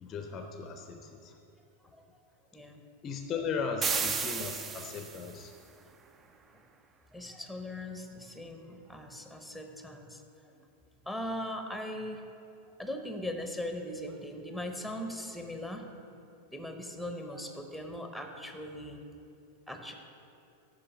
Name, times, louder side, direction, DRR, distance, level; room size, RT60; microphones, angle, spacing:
voice 1, 0.0-1.3 3.0-5.6, left 5 dB, 30° left, 5 dB, 0.6 m, -37 dB
sound 1, 3.8-5.4, right 5 dB, 20° right, 0.4 m, -33 dB
voice 2, 7.1-10.7 11.1-12.2 12.8-15.9 16.5-19.0 19.7-19.9, left 1 dB, ahead, 4 dB, 0.8 m, -40 dB
10.0 x 4.9 x 5.9 m, 2.7 s
figure-of-eight pair, 90°, 0 cm